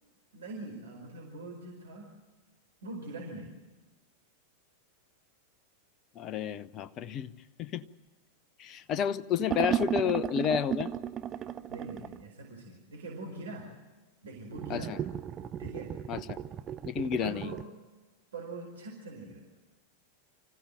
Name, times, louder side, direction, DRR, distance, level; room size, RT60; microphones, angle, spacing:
voice 1, 0.3-2.1 2.8-3.5 11.4-13.7 14.2-15.0 15.6-15.9 17.2-17.6 18.3-19.4, right 2 dB, 65° right, -1 dB, 4.8 m, -43 dB
voice 2, 6.1-7.3 7.6-7.9 8.6-10.9 14.7-15.0 16.1-16.4 16.8-17.5, left 8 dB, 35° left, 14 dB, 0.9 m, -31 dB
sound 1, 9.5-12.2 14.5-17.6, right 10 dB, 30° right, 0.7 m, -35 dB
26.0 x 15.5 x 9.0 m, 1.2 s
figure-of-eight pair, 90°, 0 cm